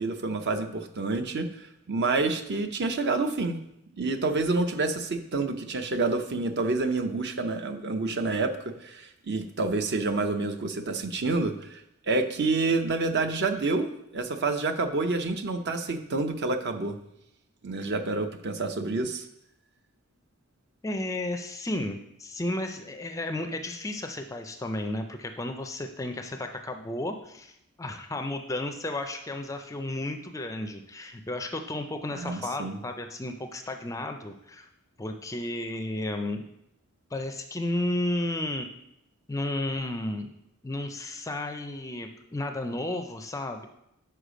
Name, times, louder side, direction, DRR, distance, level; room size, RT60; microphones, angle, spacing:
voice 1, 0.0-3.6 4.0-17.0 17.6-19.3 32.1-32.8, right 3 dB, 50° right, 7 dB, 0.6 m, -28 dB
voice 2, 20.8-34.7 35.0-36.4 37.1-38.7 39.3-40.3 40.6-43.7, left 1 dB, 15° left, 6 dB, 0.4 m, -33 dB
6.6 x 4.8 x 5.0 m, 0.79 s
head